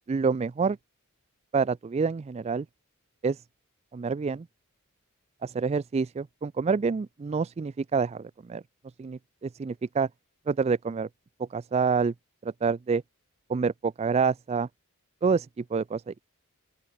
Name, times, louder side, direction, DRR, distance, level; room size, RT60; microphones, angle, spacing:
voice 1, 0.1-0.8 1.5-2.7 3.2-3.4 3.9-4.5 5.4-8.6 9.0-10.1 10.5-11.1 11.4-12.1 12.4-13.0 13.5-14.7 15.2-16.2, right 5 dB, 30° right, 0.3 m, -27 dB
open air
head